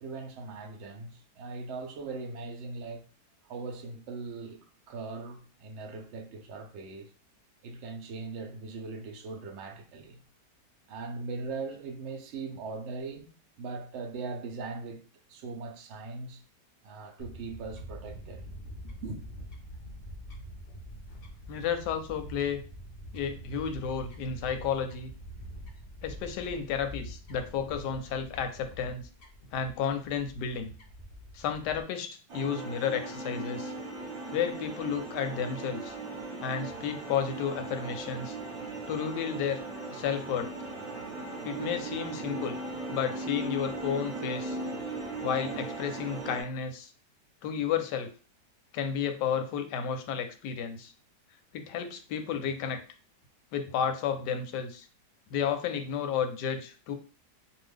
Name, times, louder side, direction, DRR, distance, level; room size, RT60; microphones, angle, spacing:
voice 1, 0.0-3.0 3.4-7.1 7.6-10.2 10.9-15.0 15.3-16.4 16.8-18.4 19.0-19.2, right 4 dB, 65° right, 0.7 m, -40 dB
Fowl / Bird, 17.2-31.8, equal, 60° left, 0.6 m, -45 dB
voice 2, 21.5-22.6 23.1-25.1 26.0-29.0 29.5-30.7 31.3-33.7 34.3-35.9 36.4-38.3 38.9-39.6 39.9-40.5 41.4-42.6 42.9-44.6 45.2-46.9 47.4-48.1 48.7-50.9 51.5-52.8 53.5-54.9 55.3-56.9, left 7 dB, 90° left, 1.2 m, -32 dB
sound 1, 32.3-46.4, right 2 dB, 30° right, 0.7 m, -38 dB
2.6 x 2.3 x 3.4 m
omnidirectional pair, 1.8 m